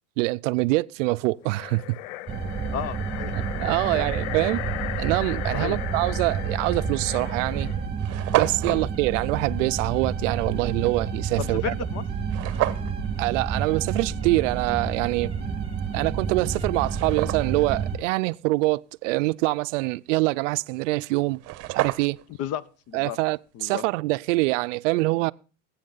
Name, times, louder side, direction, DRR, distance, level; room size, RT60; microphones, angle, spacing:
voice 1, 0.2-2.0 3.3-4.6 5.0-7.7 8.3-11.7 13.2-15.3 15.9-21.4 21.7-22.2 22.9-25.3, right 22 dB, 85° right, 0.5 m, -25 dB
sound 1, 1.4-7.9, left 16 dB, 90° left, 0.5 m, -36 dB
sound 2, 2.3-18.0, right 6 dB, 15° right, 1.7 m, -30 dB
voice 2, 2.7-3.3 3.8-4.1 5.5-5.8 8.6-8.8 11.4-12.0 22.4-23.2 23.5-23.8, left 10 dB, 45° left, 0.7 m, -33 dB
sound 3, 6.5-6.7 7.4-7.5 7.7-7.8 8.0-8.8 12.3-12.9 15.9-16.0 16.5-17.7 21.0-21.1 21.3-22.3, right 17 dB, 40° right, 0.8 m, -29 dB
20.0 x 8.5 x 3.9 m
supercardioid pair, 130°, 36 cm